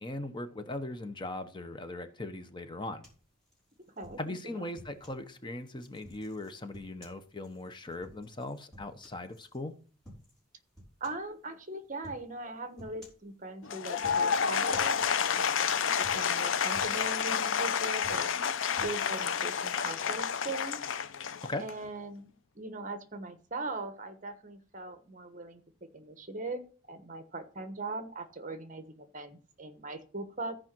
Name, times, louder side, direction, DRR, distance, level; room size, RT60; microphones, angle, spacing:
voice 1, 0.0-3.0 4.2-9.7 21.4-21.6, left 2 dB, 25° left, 0.8 m, -39 dB
sound 1, 3.0-5.2 5.8-9.6 10.0-10.4 10.7-11.3 12.0-12.3 12.8-13.3 13.9-14.4 14.7-15.7 16.0-16.4 16.7-17.6 17.9-19.0, equal, 5° left, 4.9 m, -53 dB
voice 2, 4.0-4.7 11.0-14.9 15.3-15.7 16.0-18.5 18.8-20.8 21.6-22.3 22.5-26.6 26.9-30.5, right 2 dB, 40° right, 1.1 m, -40 dB
Applause / Crowd, 13.6-21.8, left 7 dB, 70° left, 0.5 m, -30 dB
14.0 x 5.0 x 6.1 m
head